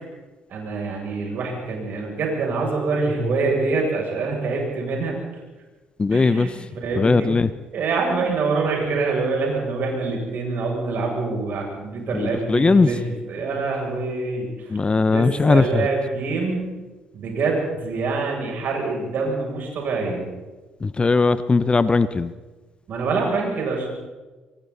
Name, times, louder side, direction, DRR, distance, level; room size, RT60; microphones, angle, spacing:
voice 1, 0.5-5.4 6.1-6.5 6.8-7.4 7.7-14.8 15.1-16.7 17.1-20.3 22.9-23.9, right 3 dB, 55° right, 0 dB, 7.7 m, -25 dB
voice 2, 6.0-6.5 7.0-7.5 12.1-12.9 14.7-15.9 20.8-22.3, left 3 dB, 30° left, 14 dB, 1.0 m, -19 dB
26.5 x 24.0 x 4.3 m, 1.2 s
hypercardioid pair, 50°, 4 cm